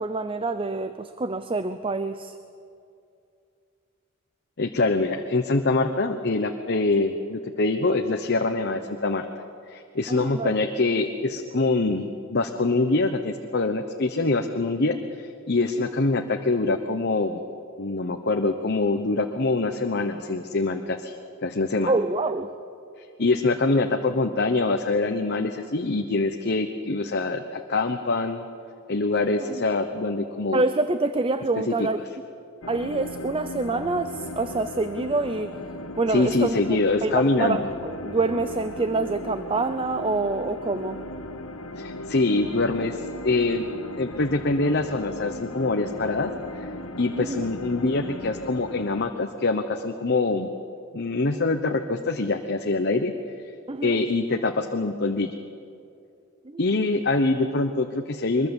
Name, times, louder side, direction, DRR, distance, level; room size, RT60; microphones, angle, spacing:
voice 1, 0.0-2.4 10.1-10.6 21.9-22.5 29.5-29.6 30.5-32.0 32.7-35.5 36.0-41.0 47.2-47.5 53.7-54.0 56.4-56.6, right 3 dB, 25° right, 11 dB, 0.6 m, -26 dB
voice 2, 4.6-9.3 9.7-17.4 17.8-21.1 21.4-21.9 23.2-28.4 28.9-30.6 31.7-31.8 36.1-37.7 41.8-43.0 43.2-43.6 44.0-46.3 46.6-46.7 47.0-50.5 50.9-53.1 53.8-55.3 56.6-58.5, left 3 dB, 50° left, 5 dB, 1.0 m, -24 dB
sound 1, 32.6-49.1, left 1 dB, 75° left, 1.4 m, -37 dB
23.0 x 22.0 x 7.2 m, 2.5 s
head